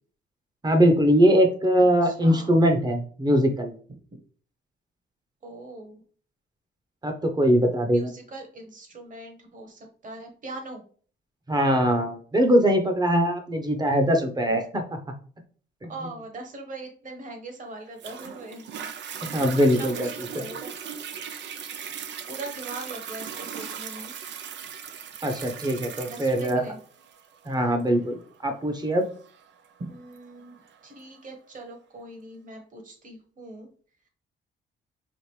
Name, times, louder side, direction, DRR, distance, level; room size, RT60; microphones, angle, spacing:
voice 1, 0.6-3.7 7.0-8.1 11.5-15.0 15.8-15.9 19.3-20.1 25.2-26.6 27.4-29.0, equal, 20° right, 5 dB, 0.9 m, -22 dB
voice 2, 2.0-2.5 4.1-4.2 5.4-6.0 7.9-10.8 15.9-18.7 19.8-20.7 21.8-24.1 26.1-26.8 29.9-33.7, right 2 dB, 40° right, 3 dB, 1.4 m, -41 dB
Toilet flush, 18.0-31.0 31.6-31.7, right 7 dB, 65° right, 0.5 m, -38 dB
5.1 x 2.5 x 3.2 m, 0.43 s
cardioid pair, 90°, 20 cm